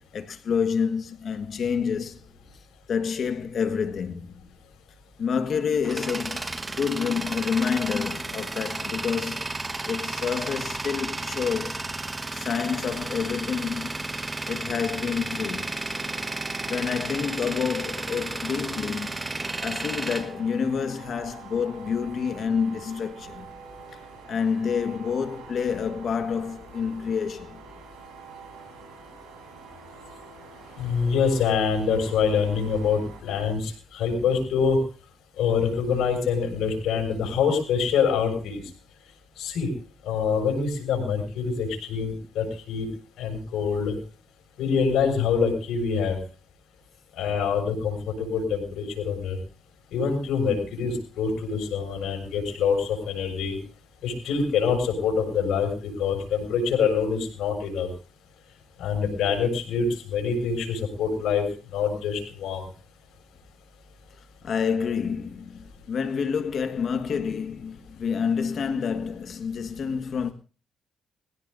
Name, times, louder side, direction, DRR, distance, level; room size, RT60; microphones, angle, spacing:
voice 1, 0.1-2.2 2.9-4.3 5.2-9.5 9.9-11.9 12.3-13.9 14.5-15.7 16.6-19.2 19.6-23.5 24.3-27.6 34.1-34.2 64.4-70.3, left 6 dB, 55° left, 1.6 m, -28 dB
Tools, 5.6-21.2, right 2 dB, 20° right, 1.3 m, -33 dB
sound 1, 15.6-33.2, right 5 dB, 90° right, 6.5 m, -46 dB
voice 2, 30.8-34.8 35.4-38.6 39.4-39.7 40.0-42.9 43.2-43.9 44.6-46.2 47.2-49.4 49.9-53.6 54.0-57.9 58.8-61.4 61.7-62.6, left 6 dB, 80° left, 6.2 m, -25 dB
22.5 x 16.5 x 2.7 m
cardioid pair, 90°, 0 cm